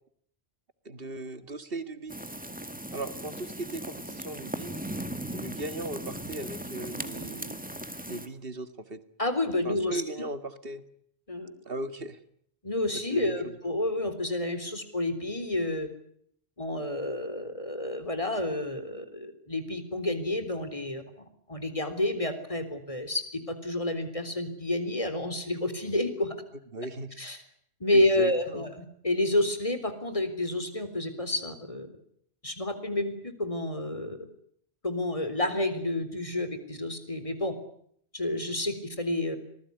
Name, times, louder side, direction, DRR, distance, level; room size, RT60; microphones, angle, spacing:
voice 1, 0.9-2.2 2.9-4.8 5.3-7.6 8.1-9.0 9.6-10.8 11.7-12.2 12.9-13.5 26.7-27.2 27.9-28.7, right 2 dB, 65° right, 11 dB, 2.1 m, -37 dB
sound 1, 2.1-8.3, right 1 dB, 10° right, 1.9 m, -38 dB
voice 2, 9.2-10.0 11.3-11.5 12.6-15.9 16.6-21.0 21.5-26.3 27.2-27.4 27.8-31.9 32.4-34.2 34.8-37.5 38.1-39.4, left 1 dB, 30° left, 10 dB, 3.9 m, -29 dB
26.0 x 20.0 x 9.7 m, 0.68 s
omnidirectional pair, 1.1 m